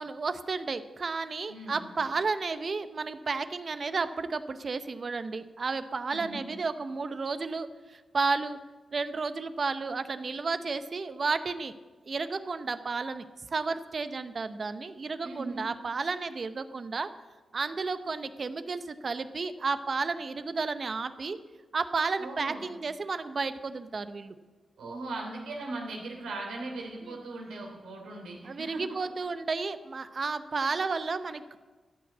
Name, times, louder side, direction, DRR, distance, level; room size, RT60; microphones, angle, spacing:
voice 1, 0.0-8.6 8.9-11.7 12.1-13.2 13.5-17.1 17.5-21.4 21.7-24.4 27.0-27.2 28.4-31.6, right 4 dB, 55° right, 11 dB, 0.8 m, -32 dB
voice 2, 1.5-1.8 6.1-6.4 15.2-15.6 22.2-22.7 24.8-29.0, right 2 dB, 90° right, 0 dB, 3.0 m, -39 dB
13.5 x 5.9 x 8.3 m, 1.3 s
cardioid pair, 55°, 0 cm